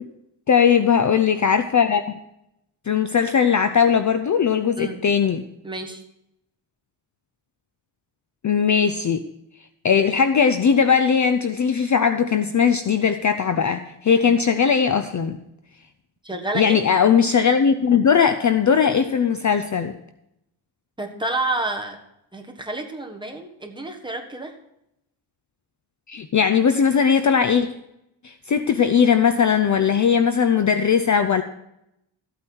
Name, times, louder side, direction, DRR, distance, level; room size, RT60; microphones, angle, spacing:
voice 1, 0.5-2.0 2.9-5.4 8.4-9.2 9.8-15.4 16.5-20.0 26.1-27.7 28.2-31.4, left 7 dB, 35° left, 9 dB, 0.6 m, -19 dB
voice 2, 5.6-6.0 14.2-14.3 16.2-16.8 21.0-22.0 22.3-24.5, right 2 dB, 10° right, 2 dB, 1.4 m, -29 dB
14.0 x 8.6 x 4.6 m, 0.82 s
wide cardioid pair, 135°, 49 cm